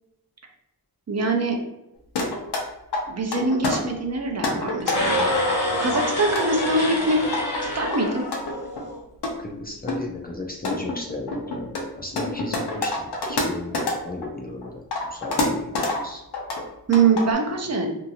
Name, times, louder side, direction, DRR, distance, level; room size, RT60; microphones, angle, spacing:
voice 1, 1.1-1.6 3.1-5.3 5.8-7.2 7.6-8.3 16.9-17.9, right 3 dB, 45° right, 2 dB, 0.5 m, -23 dB
sound 1, 2.2-2.6 2.9-3.8 4.3-5.5 5.9-7.6 7.9-8.8 9.2-9.3 9.9-10.0 10.4-14.3 14.6-16.0 16.3-16.6 16.9-17.3, left 2 dB, 90° left, 0.7 m, -27 dB
sound 2, 4.8-9.0, left 1 dB, 55° left, 0.9 m, -26 dB
voice 2, 9.4-11.7 11.9-14.8 15.1-15.7 16.0-16.2, left 2 dB, 25° left, -1 dB, 0.4 m, -35 dB
2.8 x 2.4 x 2.7 m, 0.87 s
wide cardioid pair, 110°, 39 cm